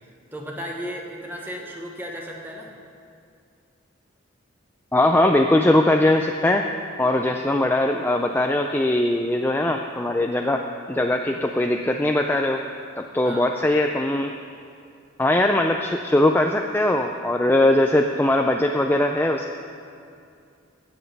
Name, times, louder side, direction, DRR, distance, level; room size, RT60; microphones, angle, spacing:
voice 1, 0.3-2.7 13.2-13.5, equal, 10° right, 0 dB, 1.0 m, -34 dB
voice 2, 4.9-6.7 7.0-10.6 10.9-12.6 13.0-14.3 15.2-19.4, left 1 dB, 10° left, 3 dB, 0.3 m, -20 dB
16.0 x 7.9 x 5.4 m, 2.4 s
head